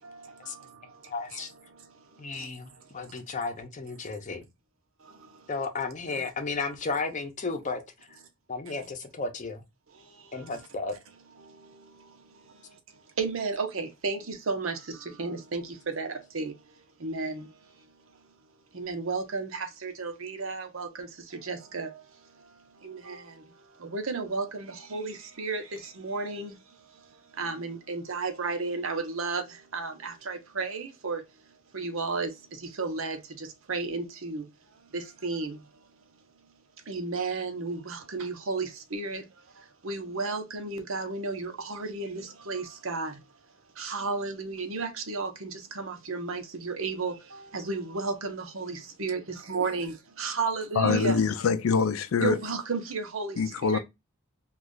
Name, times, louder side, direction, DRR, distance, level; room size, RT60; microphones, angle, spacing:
voice 1, 0.0-2.5 2.8-3.1 5.0-5.5 9.9-10.5 11.4-17.9 18.7-34.5 34.7-35.8 36.9-43.2 43.7-51.2 52.2-53.8, right 4 dB, 65° right, 0.8 m, -34 dB
voice 2, 0.8-1.5 2.2-4.5 5.5-7.8 8.5-9.6 10.3-10.9, left 4 dB, 35° left, 0.7 m, -33 dB
voice 3, 50.8-52.4 53.4-53.8, left 5 dB, 70° left, 0.4 m, -24 dB
3.1 x 2.4 x 3.7 m
head